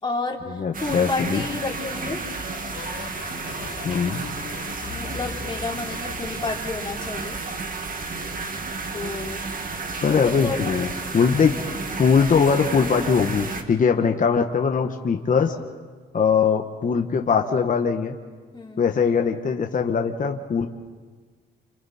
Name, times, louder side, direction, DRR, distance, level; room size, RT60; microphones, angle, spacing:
voice 1, 0.0-2.2 4.9-7.4 8.9-9.4 10.0-10.6 11.1-11.3 18.5-18.9, left 3 dB, 25° left, -2 dB, 4.0 m, -31 dB
voice 2, 0.5-1.4 3.8-4.2 10.0-10.9 11.1-11.6 12.0-15.5 16.1-18.1 18.8-20.7, left 6 dB, 40° left, 4 dB, 1.4 m, -21 dB
sound 1, 0.7-13.6, right 3 dB, 45° right, 2.2 m, -32 dB
sound 2, 0.9-7.7 7.9-9.5 10.5-10.9 11.1-11.5 13.0-13.3 13.6-13.9 15.4-15.5, left 6 dB, 60° left, 1.9 m, -42 dB
29.5 x 27.0 x 4.4 m, 1.4 s
cardioid pair, 90°, 20 cm